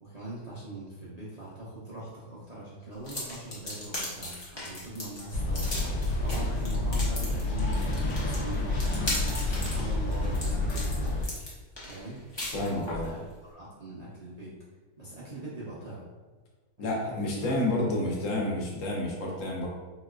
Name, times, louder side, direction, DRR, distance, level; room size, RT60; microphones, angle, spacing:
voice 1, 0.0-11.2 11.8-12.2 12.5-13.2 13.5-14.6 15.0-16.1 16.8-18.4, right 1 dB, 60° right, -8 dB, 0.4 m, -42 dB
sound 1, 3.0-13.1, left 1 dB, 35° left, 0.4 m, -37 dB
sound 2, 5.3-11.3, left 2 dB, 85° left, 1.2 m, -29 dB
voice 2, 12.5-13.1 16.8-19.7, left 1 dB, 65° left, -2 dB, 1.0 m, -30 dB
3.9 x 2.2 x 2.3 m, 1.3 s
omnidirectional pair, 1.6 m